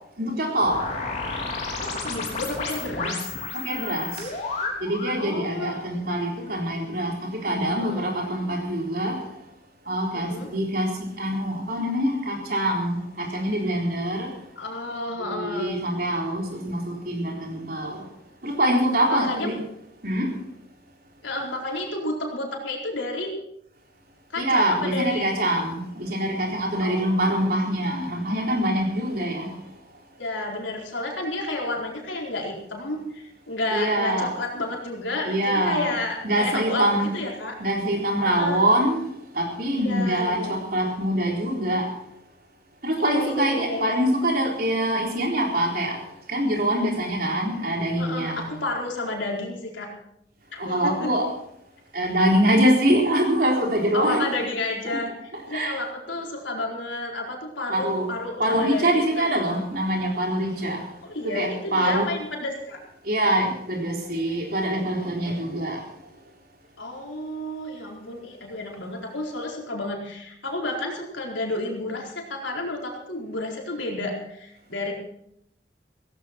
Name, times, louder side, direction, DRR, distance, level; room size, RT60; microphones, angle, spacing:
voice 1, 0.2-0.8 3.0-4.3 4.8-9.2 9.9-14.3 15.2-18.0 18.4-19.5 20.0-20.3 24.4-29.5 33.7-34.3 35.2-36.0 36.2-37.1 37.6-39.1 39.3-41.9 42.8-46.0 46.3-48.5 50.6-51.3 51.9-54.3 55.5-55.8 57.7-58.1 58.4-60.8 61.2-62.1 63.0-65.8, right 1 dB, 50° right, 0 dB, 4.1 m, -24 dB
sound 1, 0.6-5.2, left 3 dB, 40° left, 3.9 m, -31 dB
voice 2, 1.8-3.3 5.2-5.9 7.8-8.0 10.1-10.5 14.6-15.8 19.1-19.6 21.2-23.4 24.3-25.3 26.8-27.2 30.2-37.6 38.2-38.6 39.8-40.6 43.0-44.0 48.0-49.9 50.5-51.1 53.9-55.1 55.5-59.7 61.0-62.8 66.8-74.9, left 2 dB, 85° left, -1 dB, 4.4 m, -31 dB
17.0 x 16.0 x 4.5 m, 0.75 s
head